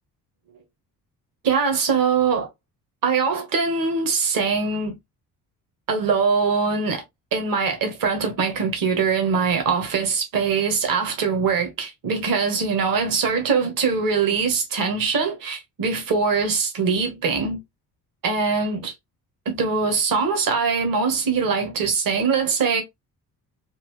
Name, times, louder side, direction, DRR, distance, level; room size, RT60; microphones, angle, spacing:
voice 1, 1.4-2.5 3.0-4.9 5.9-7.0 7.3-17.6 18.2-18.9 19.4-22.8, right 5 dB, 40° right, 1.5 m, -22 dB
4.4 x 2.5 x 3.0 m
figure-of-eight pair, 45°, 49 cm